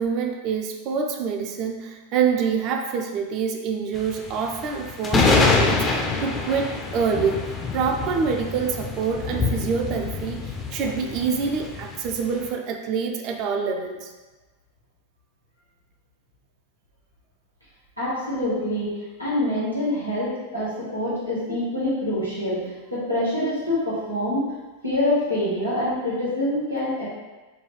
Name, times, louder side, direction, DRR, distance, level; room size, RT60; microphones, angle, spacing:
voice 1, 0.0-7.4 7.7-14.1, right 6 dB, 40° right, 3 dB, 0.4 m, -26 dB
sound 1, 4.0-12.5, left 3 dB, 20° left, 0.5 m, -25 dB
voice 2, 18.0-18.9 19.2-24.5 24.8-27.1, left 1 dB, 90° left, -9 dB, 1.1 m, -25 dB
4.6 x 2.3 x 3.1 m, 1.2 s
figure-of-eight pair, 90°, 0 cm